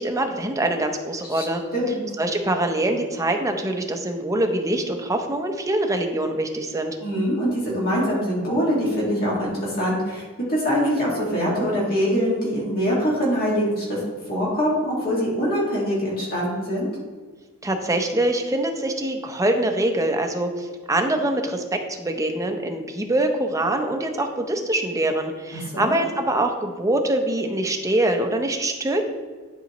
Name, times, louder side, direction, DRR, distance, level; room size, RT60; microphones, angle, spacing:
voice 1, 0.0-1.6 2.2-7.0 17.6-29.1, right 1 dB, 15° right, 4 dB, 0.6 m, -24 dB
voice 2, 1.7-2.0 7.0-14.0 14.3-16.9 25.5-26.0, equal, 45° left, -6 dB, 2.0 m, -23 dB
11.0 x 4.1 x 3.0 m, 1.5 s
head